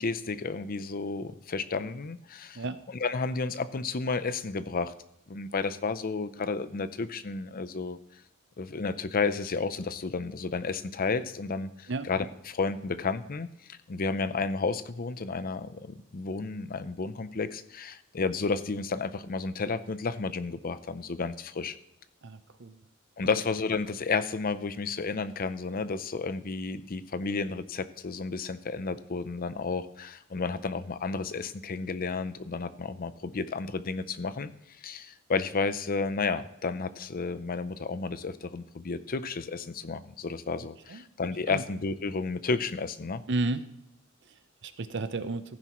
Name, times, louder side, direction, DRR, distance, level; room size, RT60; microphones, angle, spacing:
voice 1, 0.0-4.9 5.3-8.0 8.6-21.8 23.2-34.5 34.8-43.2, left 4 dB, 45° left, 13 dB, 0.6 m, -32 dB
voice 2, 22.2-22.8 23.2-23.4 40.9-41.0 41.5-41.6 43.3-43.6 44.3-44.4 44.6-45.4, right 3 dB, 60° right, 11 dB, 0.7 m, -32 dB
15.0 x 10.0 x 3.1 m, 0.81 s
head